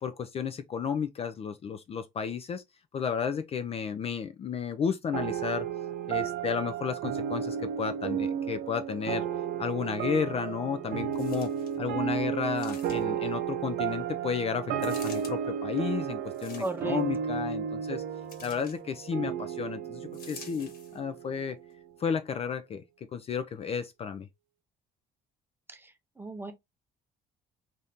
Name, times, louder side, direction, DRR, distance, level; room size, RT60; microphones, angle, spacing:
voice 1, 0.0-2.6 2.9-5.7 6.1-9.2 9.6-11.5 11.8-18.0 18.4-21.6 22.0-22.8 23.1-24.3, left 7 dB, 35° left, 0.4 m, -32 dB
sound 1, 5.1-21.9, right 8 dB, 70° right, 0.5 m, -33 dB
sound 2, 11.1-11.8 12.5-13.2 14.8-15.3 16.3-17.0 18.3-18.8 20.1-21.0 21.7-21.8, left 5 dB, 60° left, 1.2 m, -48 dB
voice 2, 16.6-17.0 25.7-25.8 26.2-26.5, right 3 dB, 15° right, 0.6 m, -34 dB
2.7 x 2.5 x 3.4 m
cardioid pair, 110°, 17 cm